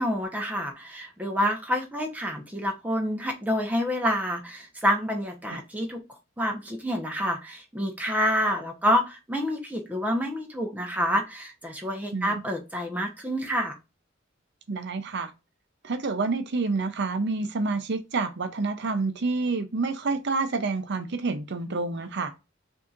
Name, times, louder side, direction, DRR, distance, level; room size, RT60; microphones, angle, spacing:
voice 1, 0.0-6.0 6.4-13.8, equal, 10° right, 0.9 m, -28 dB
voice 2, 14.7-15.3 15.8-22.3, right 3 dB, 60° right, 0.6 m, -28 dB
6.3 x 2.8 x 2.5 m
head